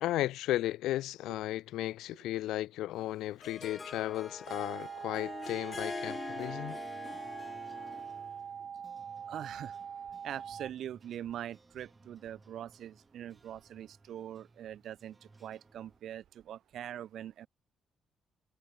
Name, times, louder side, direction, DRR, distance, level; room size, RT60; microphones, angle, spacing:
voice 1, 0.0-6.8, left 15 dB, 90° left, 0.4 m, -35 dB
Harp, 3.0-8.3, left 4 dB, 30° left, 0.6 m, -43 dB
sound 1, 4.5-10.7, right 7 dB, 50° right, 0.5 m, -43 dB
sound 2, 6.3-16.0, right 3 dB, 20° right, 2.3 m, -61 dB
voice 2, 9.2-9.8 10.2-17.5, right 10 dB, 70° right, 1.1 m, -43 dB
cardioid pair, 90°, 0 cm